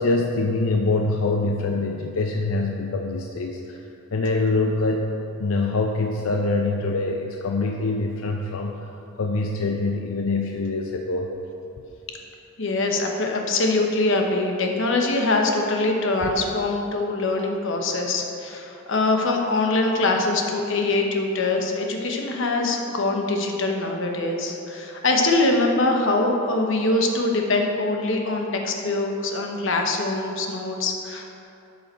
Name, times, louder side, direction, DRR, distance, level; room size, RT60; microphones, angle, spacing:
voice 1, 0.0-3.8 4.1-5.1 5.4-8.7 9.2-11.3 16.2-16.3, left 3 dB, 90° left, 2 dB, 0.5 m, -24 dB
voice 2, 12.6-31.4, left 2 dB, 65° left, 2 dB, 1.0 m, -23 dB
12.0 x 5.5 x 4.5 m, 2.7 s
head